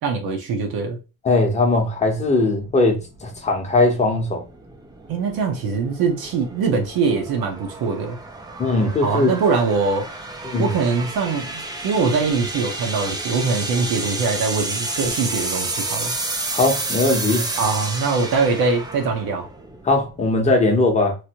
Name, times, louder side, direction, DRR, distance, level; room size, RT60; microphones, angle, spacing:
voice 1, 0.0-1.0 5.1-8.2 9.0-10.1 10.6-16.1 17.6-19.5, right 4 dB, 75° right, 0.9 m, -22 dB
voice 2, 1.2-4.4 8.6-9.3 10.4-10.7 16.5-17.5 19.8-21.2, left 2 dB, 20° left, 0.7 m, -19 dB
sound 1, 2.0-20.5, right 2 dB, 10° right, 0.3 m, -31 dB
3.1 x 2.5 x 2.8 m
cardioid pair, 160°, 37 cm